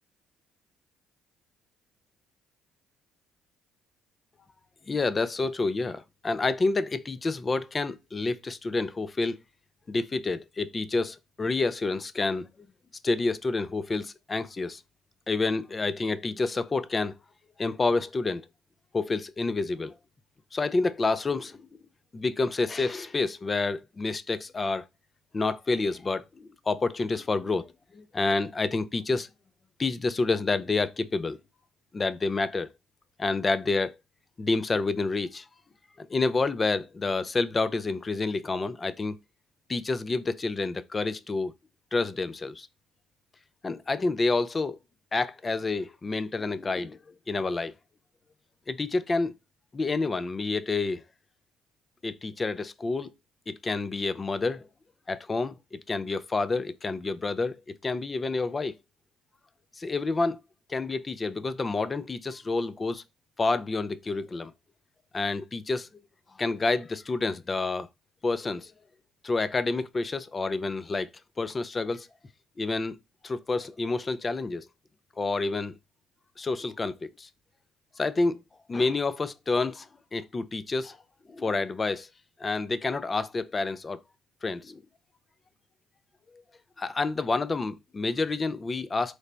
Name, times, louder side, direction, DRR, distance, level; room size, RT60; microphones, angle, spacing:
voice 1, 4.9-9.4 9.9-12.5 13.0-14.8 15.3-17.1 17.6-18.4 18.9-20.0 20.5-21.7 22.1-24.9 25.3-29.3 29.8-31.4 31.9-32.7 33.2-33.9 34.4-35.5 36.0-39.2 39.7-41.5 41.9-42.7 43.6-44.8 45.1-47.7 48.7-49.3 49.7-51.0 52.0-53.1 53.5-54.7 55.1-58.8 59.7-60.4 60.7-63.0 63.4-64.5 65.1-65.9 66.4-67.9 68.2-68.7 69.2-71.1 71.4-72.1 72.6-73.0 73.2-74.7 75.2-75.7 76.4-77.3 78.0-78.4 78.7-81.0 81.3-82.1 82.4-84.0 84.4-84.8 86.8-89.2, left 3 dB, 30° left, 0.4 m, -28 dB
3.2 x 2.0 x 3.8 m
hypercardioid pair, 55°, 0 cm